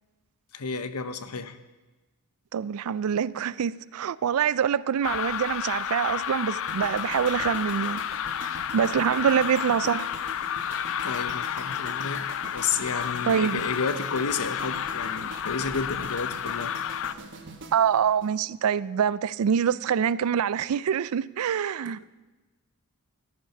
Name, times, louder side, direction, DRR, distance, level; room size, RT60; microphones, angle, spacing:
voice 1, 0.5-1.6 11.0-16.7 21.9-22.1, left 5 dB, 80° left, 0.8 m, -31 dB
voice 2, 2.5-8.0 8.7-10.1 13.3-13.6 17.7-22.0, right 8 dB, 75° right, 0.4 m, -25 dB
sound 1, 5.0-17.1, left 9 dB, 60° left, 0.5 m, -31 dB
sound 2, 6.7-18.9 19.1-19.4, right 2 dB, 55° right, 1.5 m, -44 dB
14.0 x 9.8 x 5.9 m
head